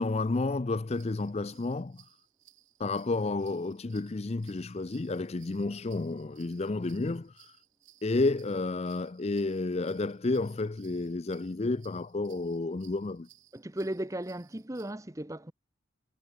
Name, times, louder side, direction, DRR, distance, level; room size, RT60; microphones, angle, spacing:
voice 1, 0.0-2.0 2.8-7.3 8.0-13.3, left 3 dB, 30° left, 0.5 m, -31 dB
sound 1, 0.9-14.9, right 13 dB, 70° right, 5.8 m, -62 dB
voice 2, 13.5-15.5, right 1 dB, 15° right, 0.9 m, -36 dB
head